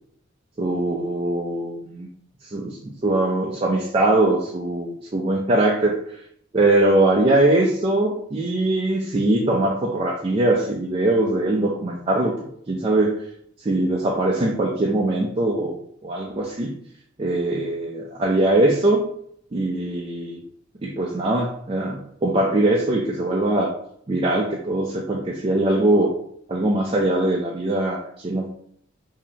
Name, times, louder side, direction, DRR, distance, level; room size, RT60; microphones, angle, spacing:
voice 1, 0.6-2.1 2.5-6.0 6.5-13.2 13.6-16.7 17.2-19.0 19.5-20.4 20.8-23.7 24.1-26.1 26.5-28.5, right 2 dB, 30° right, -2 dB, 0.4 m, -21 dB
5.1 x 2.8 x 2.8 m, 0.67 s
head